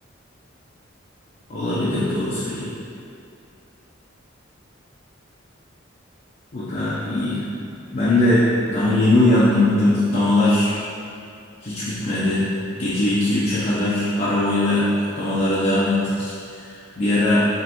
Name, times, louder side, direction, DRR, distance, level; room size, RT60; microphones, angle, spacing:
voice 1, 1.5-2.7 6.5-7.4 7.9-10.8 11.6-12.5 12.8-14.9 15.2-16.3 17.0-17.5, left 1 dB, 40° left, -11 dB, 0.7 m, -20 dB
5.2 x 3.2 x 3.0 m, 2.5 s
head